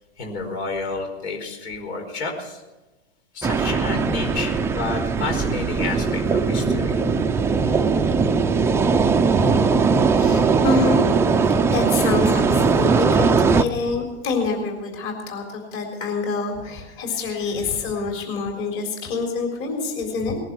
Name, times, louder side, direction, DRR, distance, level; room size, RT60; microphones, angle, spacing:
voice 1, 0.2-2.6 3.3-7.0, left 3 dB, 75° left, 3 dB, 4.8 m, -30 dB
sound 1, 3.4-13.6, right 5 dB, 10° right, 0.4 m, -19 dB
voice 2, 10.1-20.4, left 4 dB, 40° left, 2 dB, 4.0 m, -27 dB
20.0 x 11.0 x 6.1 m, 1.1 s
supercardioid pair, 130°, 33 cm